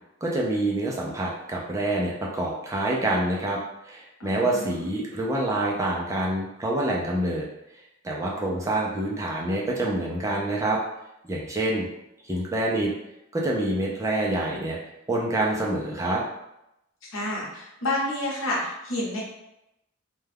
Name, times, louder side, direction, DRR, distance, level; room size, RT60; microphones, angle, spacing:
voice 1, 0.2-3.6 3.8-7.4 8.0-10.8 11.2-11.9 12.3-12.9 13.3-14.8 15.1-16.2, right 1 dB, 15° right, -3 dB, 0.4 m, -26 dB
voice 2, 4.2-4.9 17.1-19.2, left 1 dB, 75° left, -4 dB, 0.9 m, -29 dB
2.2 x 2.2 x 3.3 m, 0.86 s
head